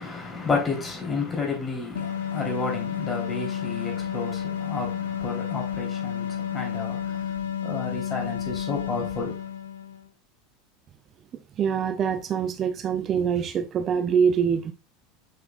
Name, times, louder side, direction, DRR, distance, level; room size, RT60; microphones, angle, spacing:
voice 1, 0.0-9.3, left 4 dB, 20° left, 3.2 m, -31 dB
sound 1, 1.9-10.1, left 9 dB, 70° left, 0.7 m, -31 dB
voice 2, 11.6-14.7, right 7 dB, 35° right, 0.5 m, -24 dB
7.5 x 5.8 x 2.3 m
figure-of-eight pair, 75°, 0 cm